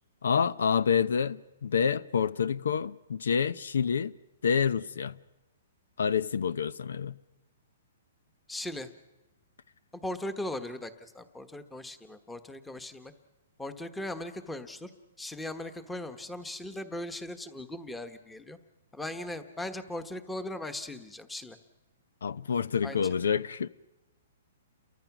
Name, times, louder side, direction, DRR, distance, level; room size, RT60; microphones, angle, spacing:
voice 1, 0.2-4.1 4.4-5.2 6.0-7.2 22.2-23.7, left 6 dB, 90° left, 0.8 m, -28 dB
voice 2, 8.5-8.9 9.9-13.1 13.6-14.9 15.2-18.6 18.9-21.6 22.8-23.0, left 1 dB, 5° left, 1.2 m, -38 dB
30.0 x 23.5 x 6.1 m
hypercardioid pair, 160°, 0 cm